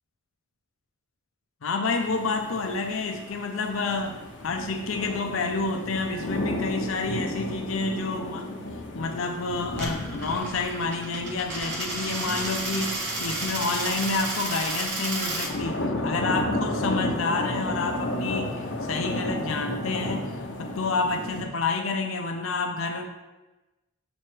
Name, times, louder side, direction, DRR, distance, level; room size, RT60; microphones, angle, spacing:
voice 1, 1.6-8.6 8.9-18.5 18.8-23.0, left 3 dB, 90° left, 4 dB, 0.5 m, -29 dB
sound 1, 1.9-21.4, left 1 dB, 65° left, 0.8 m, -33 dB
Coin (dropping), 9.7-15.5, right 2 dB, 55° right, 1.0 m, -32 dB
6.9 x 3.2 x 4.5 m, 1.1 s
head